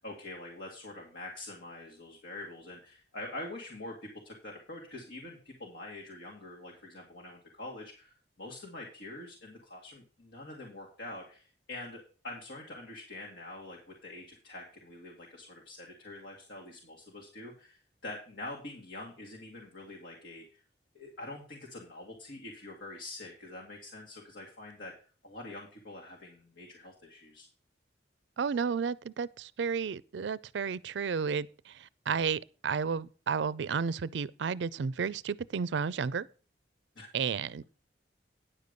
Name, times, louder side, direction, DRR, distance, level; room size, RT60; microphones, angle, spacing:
voice 1, 0.0-20.6 20.9-24.9 25.2-27.5 37.0-37.1, left 2 dB, 80° left, 2.1 m, -45 dB
voice 2, 28.4-36.3 37.1-37.6, right 6 dB, 75° right, 0.4 m, -32 dB
10.0 x 6.7 x 5.2 m
head